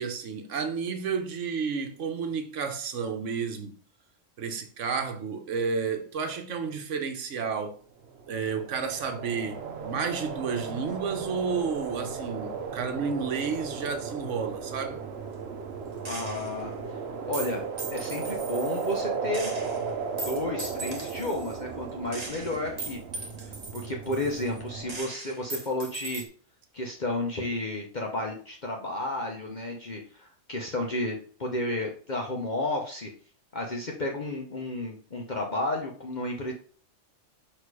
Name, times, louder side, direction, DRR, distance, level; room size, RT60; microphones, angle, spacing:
voice 1, 0.0-3.8 4.4-7.8 8.3-15.0, right 5 dB, 75° right, 1.2 m, -31 dB
sound 1, 8.0-25.0, right 5 dB, 60° right, 1.0 m, -36 dB
voice 2, 16.0-16.7 17.2-17.6 17.9-19.5 20.3-23.0 23.7-26.2 26.7-33.1 33.5-36.5, left 2 dB, 40° left, 0.9 m, -32 dB
Gunshot gunfire, 16.0-16.7 17.3-19.0 19.3-21.6 22.1-24.6 24.9-26.2, right 2 dB, 35° right, 1.1 m, -39 dB
6.4 x 3.3 x 4.8 m
omnidirectional pair, 1.3 m